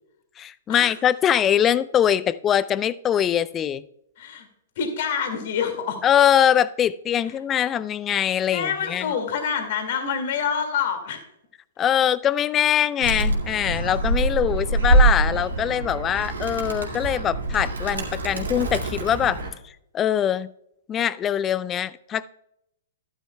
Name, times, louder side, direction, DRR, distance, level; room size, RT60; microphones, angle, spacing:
voice 1, 0.4-3.8 6.0-9.0 11.8-19.4 19.9-20.5 20.9-22.3, left 9 dB, 20° left, 18 dB, 0.4 m, -22 dB
voice 2, 4.2-4.5 4.8-6.0 8.5-11.2, left 7 dB, 50° left, 5 dB, 2.1 m, -27 dB
Animal, 13.0-19.5, right 2 dB, 75° right, 2.1 m, -24 dB
12.5 x 11.0 x 2.3 m, 0.78 s
figure-of-eight pair, 115°, 0 cm